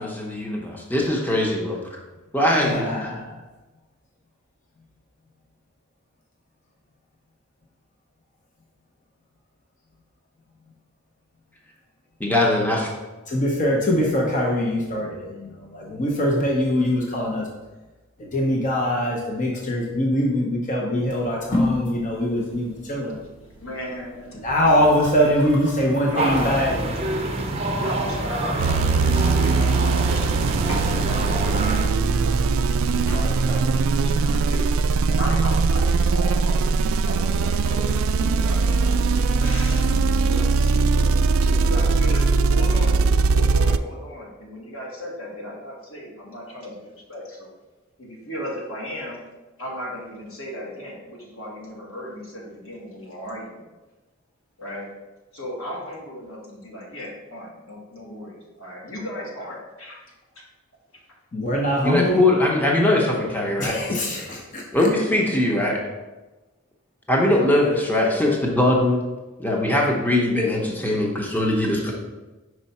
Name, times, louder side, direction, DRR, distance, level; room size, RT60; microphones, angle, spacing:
voice 1, 0.0-2.0 2.3-3.1 12.2-12.9 61.8-63.8 64.7-65.8 67.1-69.0 69.4-71.9, left 1 dB, 10° left, -2 dB, 0.8 m, -21 dB
voice 2, 2.7-3.3 13.3-17.5 18.2-23.2 24.4-26.8 61.3-62.2 63.6-64.6, equal, 40° left, -1 dB, 0.9 m, -23 dB
sound 1, 21.0-34.9, left 1 dB, 60° left, 1.6 m, -35 dB
voice 3, 23.6-24.3 24.7-25.0 26.0-27.0 27.6-30.3 30.9-32.4 32.8-34.7 35.1-36.7 37.0-38.0 38.3-41.1 41.4-42.2 42.5-42.9 43.3-46.7 47.1-47.5 48.0-49.2 49.6-53.6 54.6-54.9 55.3-60.0 64.3-64.4, equal, 85° left, -3 dB, 1.7 m, -36 dB
sound 2, 26.1-31.9, right 2 dB, 30° right, 0.6 m, -27 dB
sound 3, 28.6-43.8, right 4 dB, 75° right, 0.3 m, -20 dB
5.5 x 4.7 x 4.2 m, 1.1 s
head